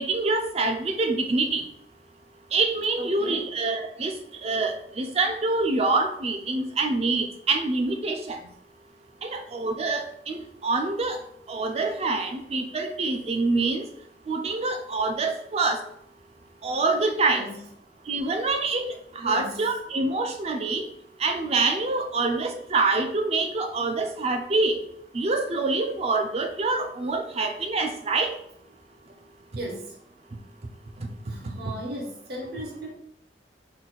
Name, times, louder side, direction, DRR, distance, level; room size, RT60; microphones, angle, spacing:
voice 1, 0.0-1.6 2.5-4.1 4.4-8.4 9.2-11.2 11.5-13.8 14.3-15.8 16.6-17.4 18.1-18.9 19.2-20.8 21.2-24.7 25.1-28.3, right 3 dB, 35° right, 6 dB, 0.5 m, -26 dB
voice 2, 3.0-3.5 17.3-17.5 19.2-19.6 29.6-29.9 31.3-32.9, right 1 dB, 65° right, -1 dB, 1.0 m, -36 dB
4.1 x 2.3 x 4.0 m, 0.71 s
head